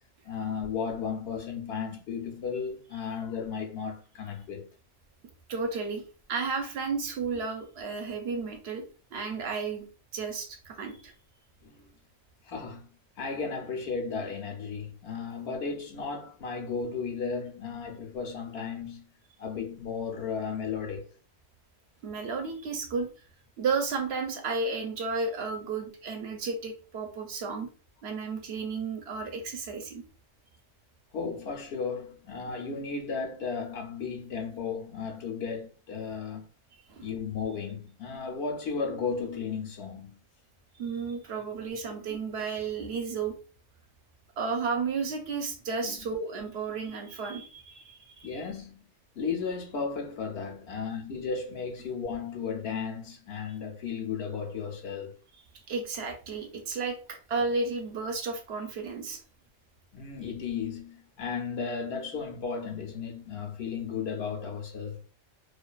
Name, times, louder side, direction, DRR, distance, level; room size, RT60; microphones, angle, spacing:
voice 1, 0.2-4.7 11.6-11.8 12.4-12.9 13.2-19.0 19.4-21.1 31.1-36.4 37.0-40.2 42.1-42.2 45.8-46.0 48.2-48.9 49.1-55.2 59.9-65.0, left 5 dB, 70° left, 0.8 m, -34 dB
voice 2, 5.5-6.0 6.3-8.8 9.1-9.9 10.1-11.1 22.0-23.1 23.6-27.7 28.0-30.0 36.9-37.1 40.8-43.4 44.4-48.3 55.7-59.2, right 4 dB, 70° right, 0.8 m, -33 dB
2.5 x 2.2 x 2.3 m
omnidirectional pair, 1.2 m